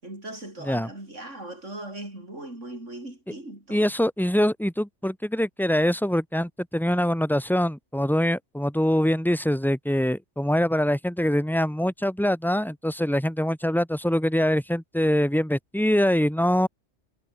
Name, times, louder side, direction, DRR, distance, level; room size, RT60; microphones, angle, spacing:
voice 1, 0.0-3.9, right 1 dB, 90° right, 7.7 m, -39 dB
voice 2, 3.7-16.7, equal, ahead, 4.1 m, -24 dB
omnidirectional pair, 1.2 m